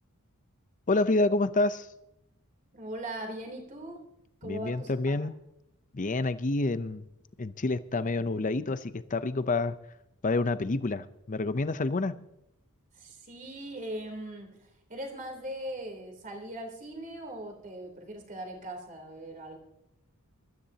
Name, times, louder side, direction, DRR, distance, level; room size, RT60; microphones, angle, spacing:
voice 1, 0.9-1.9 4.4-5.3 5.9-7.1 7.4-9.7 10.2-12.1, left 2 dB, 35° left, 13 dB, 0.6 m, -28 dB
voice 2, 2.7-4.0 4.4-5.3 12.9-19.6, right 1 dB, 35° right, 3 dB, 3.3 m, -40 dB
23.5 x 13.5 x 2.8 m, 0.83 s
head